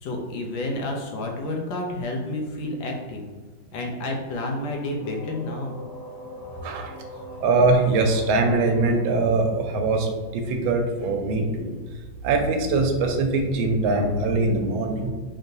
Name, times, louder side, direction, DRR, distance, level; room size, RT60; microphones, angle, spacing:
voice 1, 0.0-3.3 3.7-5.8, left 2 dB, 75° left, 1 dB, 1.4 m, -30 dB
sound 1, 5.0-10.7, equal, 35° left, 1.8 m, -42 dB
voice 2, 6.6-6.9 7.4-11.7 12.2-15.1, right 3 dB, 85° right, 4 dB, 1.4 m, -22 dB
3.8 x 3.7 x 2.7 m, 1.3 s
omnidirectional pair, 2.2 m